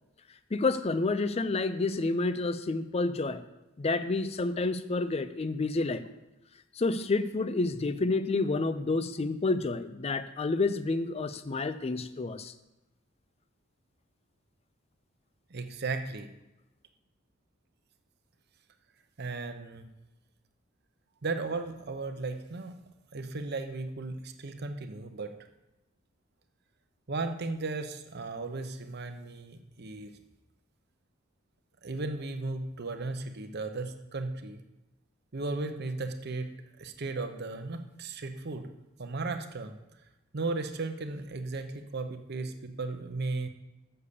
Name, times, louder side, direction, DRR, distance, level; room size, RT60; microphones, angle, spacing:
voice 1, 0.5-3.4 3.8-6.0 6.7-12.5, left 3 dB, 30° left, 12 dB, 0.4 m, -29 dB
voice 2, 15.5-16.3 19.2-19.9 21.2-22.8 23.1-25.3 27.1-30.1 31.8-34.6 35.3-36.5 36.8-38.7 39.0-39.7 40.3-43.5, right 3 dB, 55° right, 7 dB, 0.8 m, -35 dB
7.0 x 6.7 x 6.8 m, 0.97 s
head